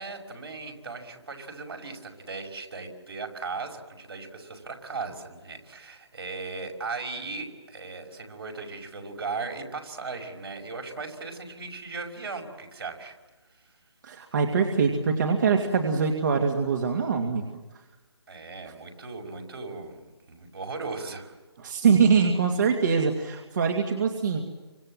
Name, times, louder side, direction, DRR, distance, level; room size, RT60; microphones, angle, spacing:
voice 1, 0.0-13.2 18.3-21.4, right 4 dB, 60° right, 4 dB, 5.7 m, -37 dB
voice 2, 14.0-17.4 21.6-24.4, right 5 dB, 45° right, 3 dB, 2.5 m, -23 dB
29.5 x 26.0 x 7.7 m, 1.2 s
figure-of-eight pair, 155°, 14 cm